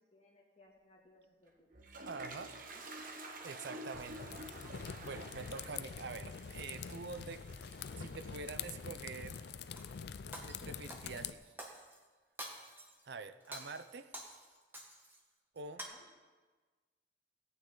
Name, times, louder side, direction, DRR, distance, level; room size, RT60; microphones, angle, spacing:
voice 1, 0.0-1.7 2.7-2.9 4.0-4.3 7.4-7.6 15.7-16.1, left 2 dB, 35° left, -2 dB, 1.9 m, -65 dB
Toilet flush, 1.5-10.3, right 2 dB, 50° right, 1.1 m, -51 dB
voice 2, 2.1-2.5 3.4-4.4 5.0-7.5 8.0-9.5 10.3-11.4 13.0-14.1 15.5-15.8, right 4 dB, 65° right, 12 dB, 0.6 m, -46 dB
sound 1, 3.9-11.3, left 6 dB, 65° left, 0.4 m, -45 dB
Shatter, 9.2-9.9 10.3-12.0 12.4-13.0 13.4-15.2 15.6-15.9, right 1 dB, 10° right, 1.4 m, -49 dB
17.5 x 9.3 x 3.9 m, 1.4 s
head